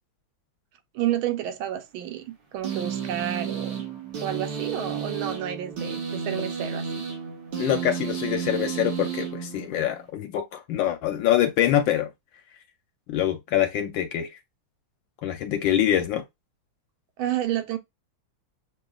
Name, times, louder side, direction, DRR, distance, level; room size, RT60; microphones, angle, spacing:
voice 1, 0.9-3.8 4.2-7.0 17.2-17.8, right 11 dB, 75° right, 1.4 m, -30 dB
sound 1, 2.6-10.0, right 7 dB, 60° right, 1.7 m, -32 dB
voice 2, 7.6-12.1 13.1-14.3 15.2-16.2, left 11 dB, 75° left, 1.2 m, -25 dB
6.8 x 2.4 x 2.3 m
omnidirectional pair, 2.3 m